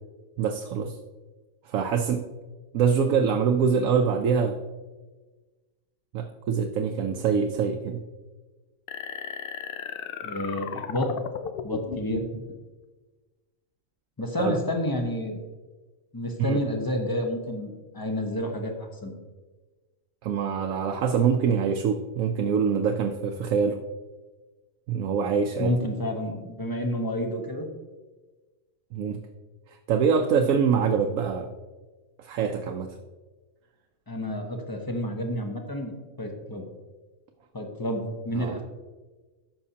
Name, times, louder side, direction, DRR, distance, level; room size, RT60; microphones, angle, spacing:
voice 1, 0.4-1.0 1.6-2.2 2.7-4.6 6.1-8.0 14.4-14.6 16.4-16.6 20.2-23.8 24.9-25.7 28.9-29.2 29.7-31.5 32.2-33.0 38.3-38.6, right 6 dB, 80° right, 4 dB, 1.0 m, -24 dB
sound 1, 8.9-12.4, left 7 dB, 65° left, 0.5 m, -35 dB
voice 2, 10.2-11.1 11.6-12.4 14.2-15.4 16.1-19.1 25.6-27.7 34.1-36.6 37.5-38.6, left 1 dB, 20° left, 3 dB, 0.7 m, -30 dB
13.5 x 5.7 x 2.8 m, 1.3 s
omnidirectional pair, 1.4 m